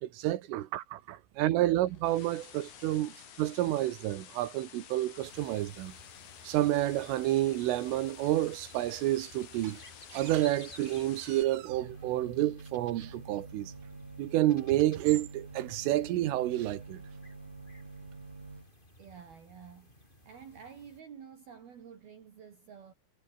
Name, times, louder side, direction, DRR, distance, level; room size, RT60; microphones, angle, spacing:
voice 1, 0.0-6.0 6.4-9.8 10.1-13.7 14.2-17.0, right 15 dB, 80° right, 4.0 m, -29 dB
sound 1, 1.6-11.4, left 9 dB, 70° left, 5.8 m, -52 dB
sound 2, 5.2-21.0, left 1 dB, 10° left, 5.4 m, -56 dB
sound 3, 11.7-18.7, right 3 dB, 35° right, 9.0 m, -47 dB
voice 2, 19.0-19.9 20.2-22.9, right 7 dB, 55° right, 4.6 m, -50 dB
omnidirectional pair, 5.7 m